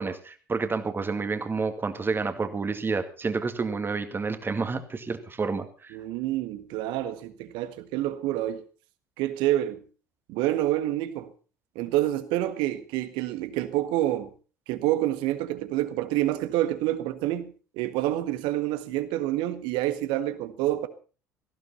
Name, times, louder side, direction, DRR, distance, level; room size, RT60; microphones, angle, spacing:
voice 1, 0.0-6.0, right 4 dB, 25° right, 2.3 m, -29 dB
voice 2, 5.9-8.6 9.2-9.8 10.3-11.3 11.7-14.3 14.7-20.9, right 14 dB, 60° right, 1.7 m, -28 dB
18.0 x 15.5 x 4.2 m
figure-of-eight pair, 60°, 9 cm